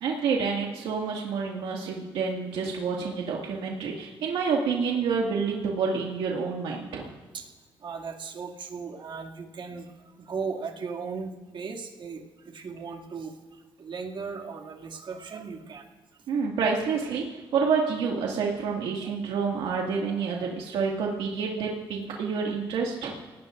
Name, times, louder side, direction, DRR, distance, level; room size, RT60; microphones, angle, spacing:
voice 1, 0.0-7.1 16.3-23.1, right 5 dB, 85° right, -2 dB, 2.1 m, -28 dB
voice 2, 7.8-9.9 10.2-15.9, right 5 dB, 60° right, 0 dB, 2.5 m, -37 dB
30.0 x 18.5 x 2.6 m, 1.3 s
supercardioid pair, 60°, 9 cm